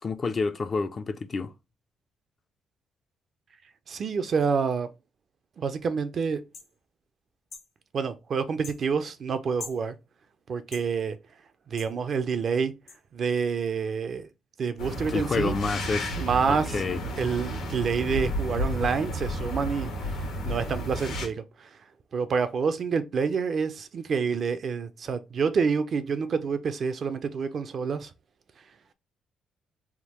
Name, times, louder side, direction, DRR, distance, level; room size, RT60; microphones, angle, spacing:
voice 1, 0.0-1.5 15.0-17.0, left 4 dB, 40° left, 0.3 m, -29 dB
voice 2, 3.9-4.9 5.6-6.4 7.9-9.9 10.5-11.2 11.7-12.7 13.1-14.3 14.6-15.6 16.2-16.8 17.2-19.9 20.4-21.7 22.1-28.1, right 5 dB, 50° right, 0.4 m, -28 dB
sound 1, 6.5-6.7 7.5-7.7 8.6-8.8 9.6-9.8 10.7-10.9 11.8-11.9 12.9-13.0, left 5 dB, 65° left, 1.0 m, -42 dB
sound 2, 14.8-21.3, equal, 90° left, 1.1 m, -32 dB
3.5 x 2.1 x 2.9 m
cardioid pair, 90°, 0 cm